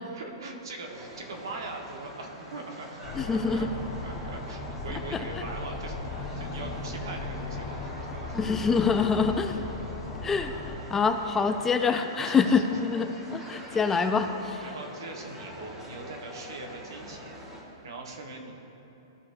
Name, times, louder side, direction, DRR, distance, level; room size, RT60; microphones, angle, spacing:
voice 1, 0.1-3.7 4.0-8.9 12.2-12.8 13.6-13.8 14.6-17.3 17.8-18.5, right 3 dB, 75° right, 2 dB, 1.3 m, -41 dB
sound 1, 0.9-17.6, right 1 dB, 20° right, 1.5 m, -45 dB
sound 2, 3.0-10.8, left 2 dB, 40° left, 1.2 m, -37 dB
voice 2, 3.2-3.7 5.1-5.2 8.3-9.6 10.2-10.5 10.9-14.6, left 5 dB, 15° left, 7 dB, 0.3 m, -25 dB
14.0 x 4.8 x 2.6 m, 3.0 s
hypercardioid pair, 140°, 2 cm